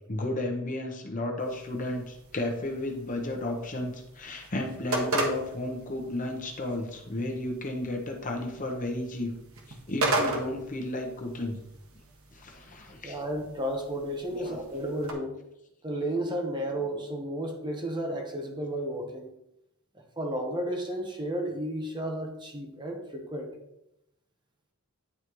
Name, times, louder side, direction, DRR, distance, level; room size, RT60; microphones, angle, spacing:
voice 1, 0.1-9.3 9.9-11.6 12.3-13.2 14.3-14.6, left 1 dB, 35° left, 2 dB, 0.9 m, -33 dB
sound 1, 1.4-15.1, right 2 dB, 70° right, 1.1 m, -36 dB
voice 2, 13.0-15.4 15.8-19.3 19.9-23.5, right 1 dB, 20° right, 2 dB, 0.9 m, -33 dB
9.6 x 4.0 x 3.1 m, 0.84 s
head